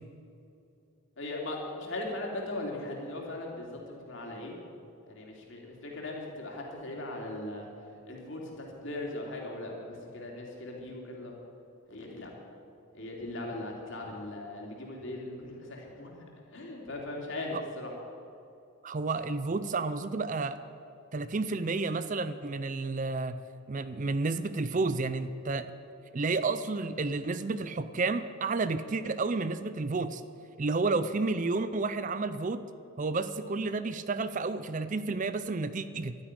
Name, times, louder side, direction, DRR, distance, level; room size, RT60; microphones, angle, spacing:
voice 1, 1.2-4.5 5.1-7.7 8.1-11.3 11.9-12.4 12.9-16.2 16.5-17.9, left 2 dB, 60° left, -1 dB, 3.0 m, -39 dB
voice 2, 18.8-20.6 21.1-23.4 23.7-25.7 26.1-30.2 30.6-32.6 33.0-36.2, right 3 dB, 35° right, 13 dB, 0.5 m, -31 dB
12.5 x 9.9 x 9.8 m, 2.6 s
head